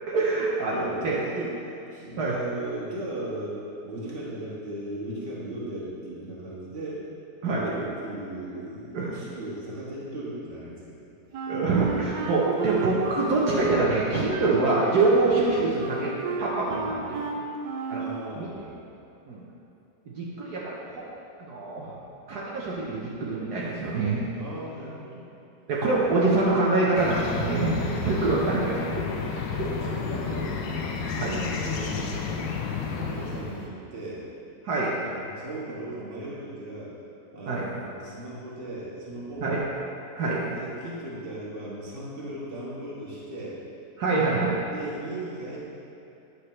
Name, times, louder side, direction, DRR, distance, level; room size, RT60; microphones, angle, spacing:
voice 1, 0.1-0.7 1.0-1.1 2.2-2.3 7.4-7.7 8.9-9.2 11.5-16.1 16.4-16.8 17.1-17.2 17.9-18.0 18.4-18.5 19.3-19.4 20.2-21.1 21.5-21.9 22.3-24.3 25.7-28.8 29.5-29.6 31.1-31.3 34.6-34.9 37.5-37.7 39.4-39.6 40.2-40.5 44.0-44.6, right 3 dB, 70° right, -6 dB, 1.4 m, -25 dB
voice 2, 0.7-1.5 1.9-3.6 3.8-7.0 7.4-11.0 16.7-17.2 18.0-18.8 24.4-25.3 29.6-32.5 33.0-34.3 35.0-36.9 37.3-39.6 40.3-43.6 44.7-45.6, right 1 dB, 35° right, -6 dB, 1.7 m, -37 dB
Wind instrument woodwind instrument, 11.3-18.1, right 4 dB, 90° right, 1.4 m, -32 dB
sound 1, 27.0-33.7, left 5 dB, 90° left, 1.3 m, -31 dB
9.6 x 6.5 x 3.2 m, 2.8 s
omnidirectional pair, 1.9 m